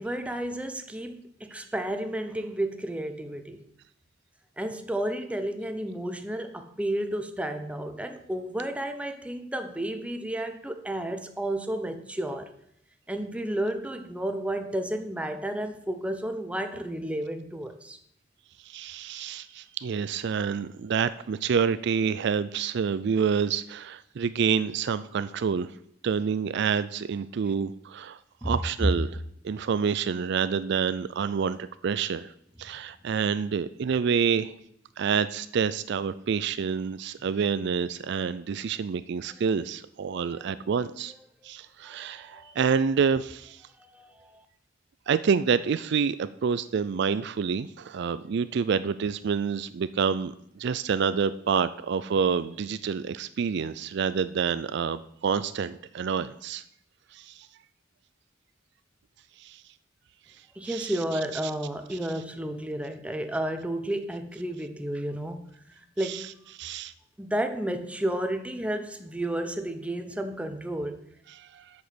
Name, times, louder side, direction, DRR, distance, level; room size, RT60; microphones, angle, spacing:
voice 1, 0.0-3.6 4.6-12.5 13.1-18.0 28.4-28.5 40.3-40.4 41.9-42.5 43.9-44.3 60.6-65.4 66.0-66.3 67.2-71.0, right 1 dB, 5° right, 7 dB, 0.8 m, -32 dB
voice 2, 18.6-25.7 26.0-32.3 32.6-34.6 35.0-41.1 41.4-43.6 45.1-56.6 57.1-57.5 59.4-59.6 60.6-60.9 61.3-61.4 61.9-62.0 66.0-66.3 66.6-66.9 71.3-71.7, right 6 dB, 60° right, 14 dB, 0.4 m, -28 dB
7.7 x 6.3 x 6.9 m, 0.72 s
head